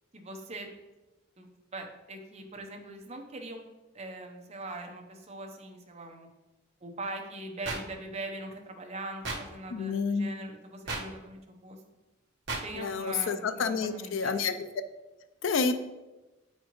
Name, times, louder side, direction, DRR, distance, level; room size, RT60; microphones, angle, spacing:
voice 1, 0.1-0.7 1.4-3.6 3.9-6.3 6.8-11.8 12.6-14.4, right 2 dB, 30° right, 2 dB, 0.8 m, -41 dB
sound 1, 7.6-7.8 9.2-9.4 10.9-11.0 12.5-12.6, right 3 dB, 60° right, 1.2 m, -32 dB
voice 2, 9.7-10.3 12.8-14.5 15.4-15.7, left 5 dB, 65° left, 11 dB, 0.4 m, -29 dB
9.1 x 4.3 x 3.0 m, 1.1 s
head